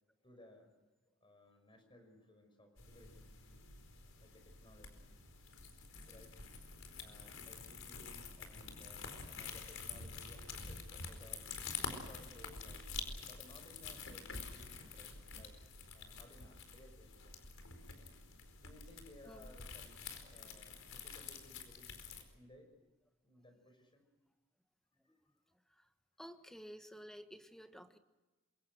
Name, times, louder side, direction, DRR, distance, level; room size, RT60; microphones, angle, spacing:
voice 1, 0.2-0.7 1.2-3.3 4.2-5.2 6.1-6.4 7.0-12.9 13.3-15.6 15.9-17.3 18.6-19.9 20.2-22.7 23.2-24.1, left 1 dB, 25° left, 6 dB, 5.9 m, -61 dB
sound 1, 2.8-22.2, left 5 dB, 80° left, 4.5 m, -48 dB
voice 2, 26.2-28.0, equal, ahead, 8 dB, 1.4 m, -52 dB
27.5 x 22.5 x 6.4 m, 1.2 s
head